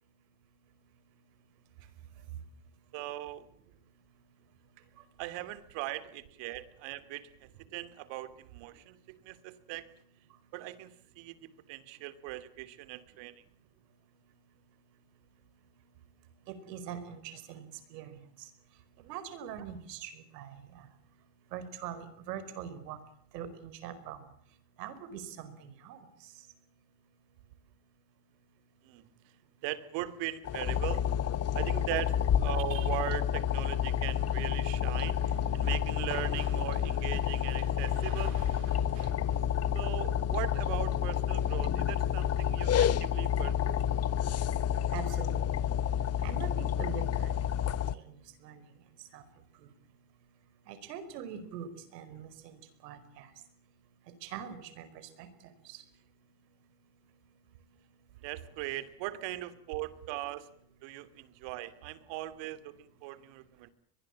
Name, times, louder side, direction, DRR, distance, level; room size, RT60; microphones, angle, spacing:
voice 1, 2.9-3.5 5.2-9.9 10.5-11.4 11.7-13.3 28.8-29.0 29.6-31.1 31.5-39.4 39.7-43.8 58.2-60.5 60.8-63.7, right 15 dB, 65° right, 14 dB, 2.9 m, -39 dB
voice 2, 16.5-18.1 19.1-20.8 21.5-23.0 23.3-24.2 24.8-26.0 44.9-45.4 46.2-47.3 47.9-48.2 48.4-48.6 49.1-49.2 50.7-52.5 52.8-53.3 54.2-55.3 55.7-55.8, right 8 dB, 80° right, 13 dB, 5.1 m, -43 dB
sound 1, 30.4-48.0, left 9 dB, 30° left, 1.1 m, -29 dB
23.5 x 20.5 x 8.8 m, 0.63 s
supercardioid pair, 105°, 48 cm